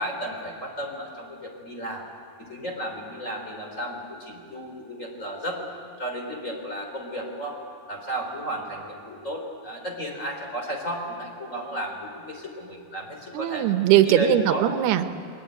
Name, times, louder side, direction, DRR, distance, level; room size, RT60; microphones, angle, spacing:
voice 1, 0.0-2.0 2.4-5.6 6.0-7.6 7.9-13.7 14.0-14.7, equal, 20° left, 1 dB, 3.4 m, -33 dB
voice 2, 13.3-15.2, right 12 dB, 85° right, 9 dB, 3.0 m, -20 dB
26.5 x 21.0 x 9.3 m, 2.6 s
omnidirectional pair, 4.5 m